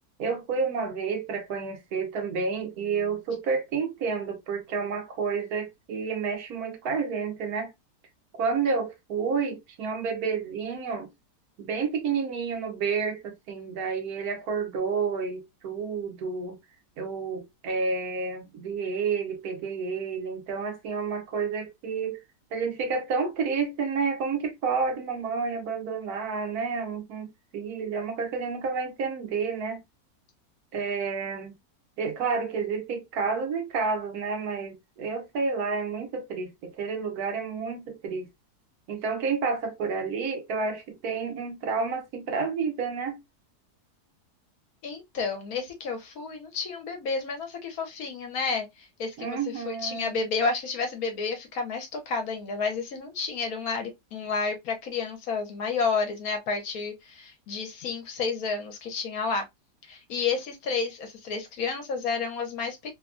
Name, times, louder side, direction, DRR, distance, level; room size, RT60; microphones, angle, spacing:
voice 1, 0.2-7.7 8.4-11.1 11.6-16.6 17.0-22.2 22.5-29.8 30.7-31.6 32.0-38.3 38.9-43.2 49.2-50.3, right 5 dB, 70° right, 1.2 m, -30 dB
voice 2, 44.8-59.4 59.9-62.9, left 4 dB, 70° left, 1.2 m, -31 dB
3.2 x 2.2 x 2.4 m
omnidirectional pair, 1.7 m